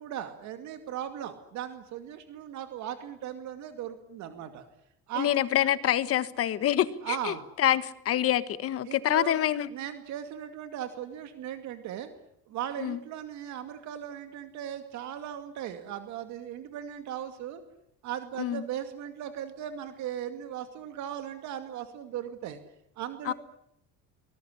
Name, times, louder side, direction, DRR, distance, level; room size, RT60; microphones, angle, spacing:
voice 1, 0.0-4.7 5.1-5.5 7.0-7.4 8.9-9.4 9.7-12.1 12.5-17.6 18.0-22.6 23.0-23.3, right 10 dB, 60° right, 8 dB, 2.4 m, -37 dB
voice 2, 5.1-9.7 12.8-13.0 18.4-18.6 23.2-23.3, left 12 dB, 45° left, 14 dB, 1.4 m, -26 dB
24.0 x 18.5 x 9.9 m, 0.75 s
cardioid pair, 145°, 32 cm